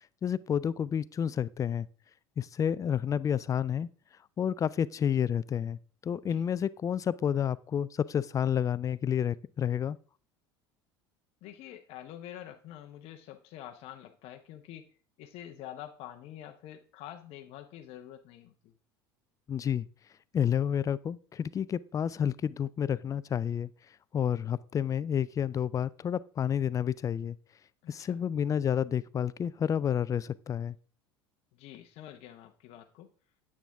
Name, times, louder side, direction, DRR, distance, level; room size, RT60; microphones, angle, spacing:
voice 1, 0.2-1.9 2.4-3.9 4.4-10.0 19.5-19.9 20.3-23.7 24.1-27.4 27.9-30.8, left 8 dB, 25° left, 0.4 m, -30 dB
voice 2, 11.4-14.9 15.2-18.7 27.8-28.2 31.6-33.1, left 11 dB, 50° left, 0.7 m, -47 dB
9.0 x 7.3 x 3.6 m
figure-of-eight pair, 70°, 14 cm